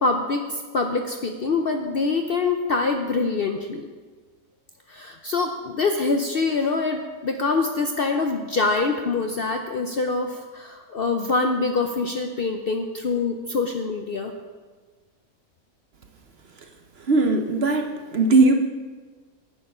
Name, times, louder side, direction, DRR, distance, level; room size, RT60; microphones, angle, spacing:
voice 1, 0.0-3.9 4.9-14.3, left 3 dB, 55° left, 4 dB, 0.6 m, -25 dB
voice 2, 17.1-18.5, right 3 dB, 55° right, 5 dB, 0.8 m, -19 dB
9.3 x 8.9 x 5.4 m, 1.4 s
omnidirectional pair, 1.6 m